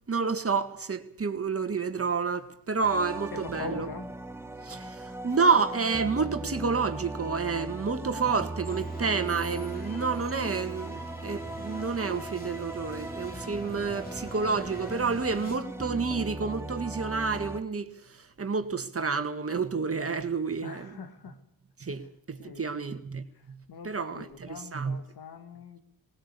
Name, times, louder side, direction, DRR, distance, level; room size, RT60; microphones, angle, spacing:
voice 1, 0.1-3.9 4.6-17.9 18.4-21.0 21.8-23.6 23.8-25.0, right 5 dB, 35° right, 2.0 m, -29 dB
sound 1, 2.8-17.6, right 2 dB, 5° right, 1.4 m, -38 dB
voice 2, 3.3-4.1 7.4-7.8 20.6-21.4 22.4-22.9 23.7-25.8, left 5 dB, 80° left, 2.5 m, -43 dB
sound 2, 8.6-15.6, left 1 dB, 25° left, 3.1 m, -45 dB
19.5 x 19.0 x 8.5 m
cardioid pair, 60°, 37 cm